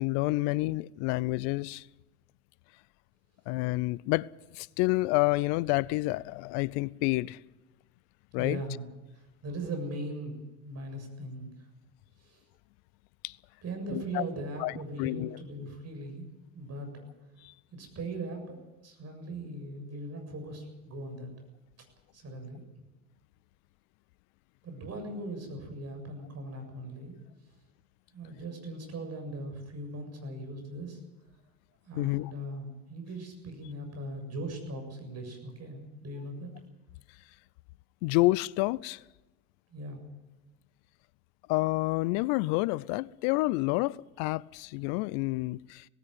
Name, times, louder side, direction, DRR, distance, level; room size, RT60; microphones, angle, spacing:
voice 1, 0.0-1.8 3.5-4.3 4.5-7.4 8.3-8.6 13.2-13.3 13.9-14.2 14.6-14.7 15.0-15.4 17.4-17.5 32.0-32.3 38.0-39.0 41.5-45.9, left 21 dB, 60° left, 0.7 m, -29 dB
voice 2, 8.3-8.8 9.1-11.7 12.2-12.4 13.6-17.1 17.7-21.3 22.1-22.6 24.6-27.1 28.1-31.0 31.8-36.5 39.7-40.0, right 1 dB, 35° right, 7.4 m, -39 dB
17.5 x 16.5 x 9.2 m
hypercardioid pair, 75°, 42 cm